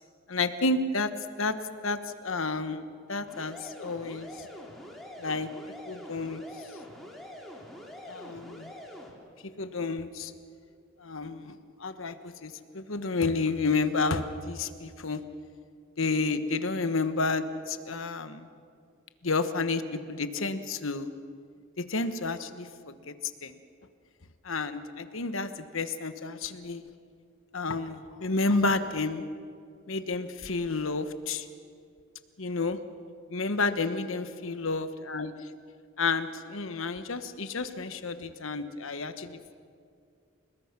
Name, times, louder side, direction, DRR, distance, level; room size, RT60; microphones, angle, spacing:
voice 1, 0.3-1.1 1.4-1.6 1.8-4.5 5.2-5.5 5.9-6.4 8.0-8.7 9.4-10.3 11.0-15.2 16.0-18.5 19.2-21.1 21.9-23.1 23.4-23.6 24.4-26.8 27.5-29.3 29.9-31.5 32.4-32.8 33.3-35.5 36.0-39.6, left 3 dB, 75° left, 10 dB, 1.2 m, -31 dB
sound 1, 3.3-9.1, equal, ahead, 3.1 m, -45 dB
29.5 x 19.5 x 6.0 m, 2.3 s
head